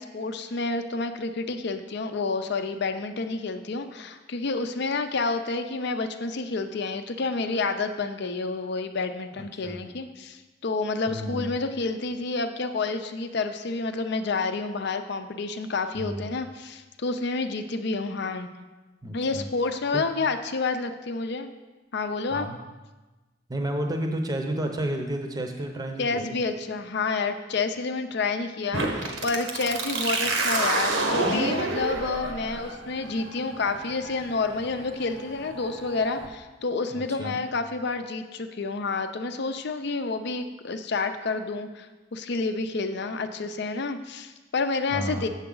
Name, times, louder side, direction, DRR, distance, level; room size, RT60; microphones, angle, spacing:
voice 1, 0.0-18.5 19.1-21.5 21.9-22.5 26.0-41.9 42.1-45.3, left 3 dB, 60° left, 8 dB, 0.6 m, -29 dB
voice 2, 9.4-9.8 11.1-11.5 16.0-16.3 19.0-19.5 19.9-20.0 22.3-22.6 23.5-26.4 36.9-37.4 44.9-45.3, right 1 dB, 20° right, 3 dB, 0.7 m, -31 dB
sound 1, 28.7-36.3, right 2 dB, 80° right, 1.1 m, -29 dB
7.8 x 7.2 x 3.8 m, 1.2 s
head